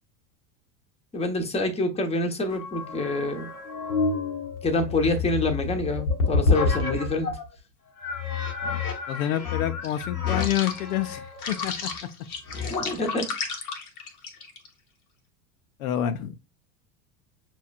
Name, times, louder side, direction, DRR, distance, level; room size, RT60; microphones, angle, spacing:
voice 1, 1.1-3.5 4.6-7.3 12.7-13.3, left 2 dB, 15° left, 0.9 m, -26 dB
sound 1, 2.5-7.5 8.0-14.7, left 4 dB, 90° left, 1.1 m, -29 dB
voice 2, 9.1-11.9 12.8-12.9 15.8-16.3, left 11 dB, 70° left, 0.6 m, -28 dB
6.2 x 3.0 x 2.3 m
hypercardioid pair, 90°, 44 cm